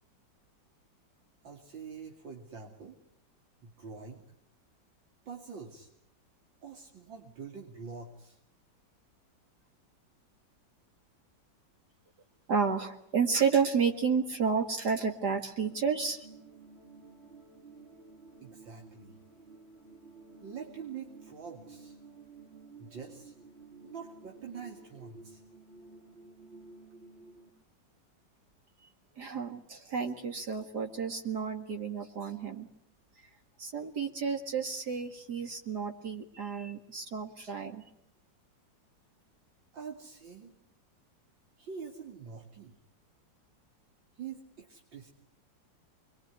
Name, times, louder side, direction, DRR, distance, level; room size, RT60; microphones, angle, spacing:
voice 1, 1.4-3.0 3.6-4.3 5.3-5.9 6.6-8.4 18.4-19.2 20.4-22.0 22.8-23.3 23.8-25.4 39.7-40.5 41.6-42.8 44.2-45.1, right 6 dB, 80° right, 0 dB, 3.4 m, -45 dB
voice 2, 12.5-16.3 29.2-32.7 33.6-37.8, right 6 dB, 60° right, 4 dB, 2.5 m, -31 dB
sound 1, 15.6-27.5, right 3 dB, 35° right, 2.7 m, -53 dB
26.5 x 22.5 x 9.5 m, 0.73 s
omnidirectional pair, 2.0 m